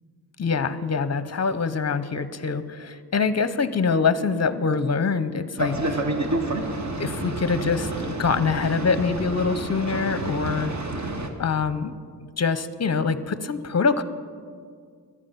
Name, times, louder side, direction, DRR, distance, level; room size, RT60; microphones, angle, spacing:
voice 1, 0.4-6.0 7.0-10.7 11.4-11.9 12.4-14.0, left 5 dB, 40° left, 14 dB, 0.7 m, -24 dB
Boat Water vehicle, 5.6-11.3, right 2 dB, 40° right, 1.3 m, -29 dB
14.5 x 11.0 x 5.7 m, 2.1 s
wide cardioid pair, 85°, 42 cm